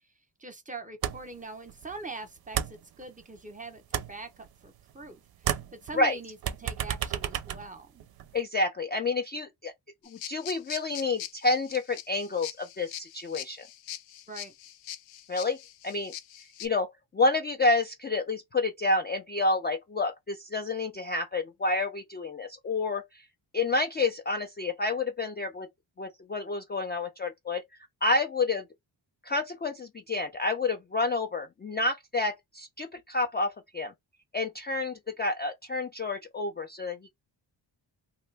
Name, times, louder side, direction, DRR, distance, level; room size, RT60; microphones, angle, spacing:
voice 1, 0.4-5.2 5.8-8.0 14.3-14.5, right 3 dB, 15° right, 0.8 m, -43 dB
sound 1, 1.0-1.4 1.7-3.5 3.8-5.1 5.4-8.4, right 10 dB, 55° right, 0.5 m, -33 dB
voice 2, 8.3-9.7 10.0-13.6 15.3-15.6 15.8-16.1 16.6-23.2 23.5-25.7 26.0-27.6 28.0-28.6 29.2-33.9 34.3-37.0, left 3 dB, 25° left, 0.4 m, -29 dB
sound 2, 10.0-16.7, left 11 dB, 80° left, 0.5 m, -42 dB
2.8 x 2.1 x 3.3 m
cardioid pair, 80°, 46 cm